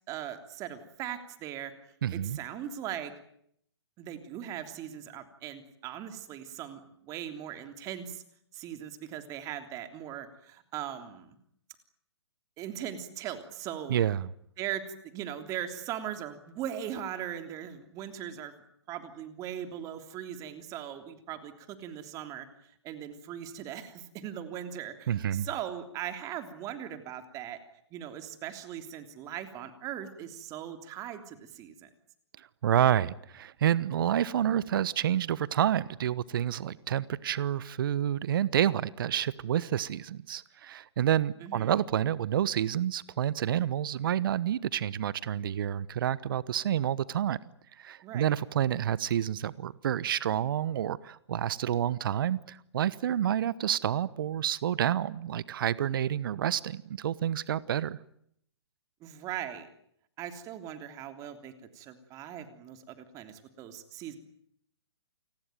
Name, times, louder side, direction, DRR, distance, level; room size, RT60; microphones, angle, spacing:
voice 1, 0.1-1.7 2.1-3.1 4.0-8.2 8.5-11.4 12.6-14.0 14.6-18.5 18.9-27.6 27.9-31.9 41.4-41.8 48.0-48.3 59.0-59.7 60.2-64.2, right 10 dB, 25° right, 8 dB, 3.3 m, -39 dB
voice 2, 2.0-2.4 13.9-14.3 25.1-25.5 32.4-47.4 47.8-58.0, right 10 dB, 50° right, 19 dB, 1.1 m, -29 dB
29.0 x 19.5 x 9.3 m, 0.71 s
hypercardioid pair, 135°, 14 cm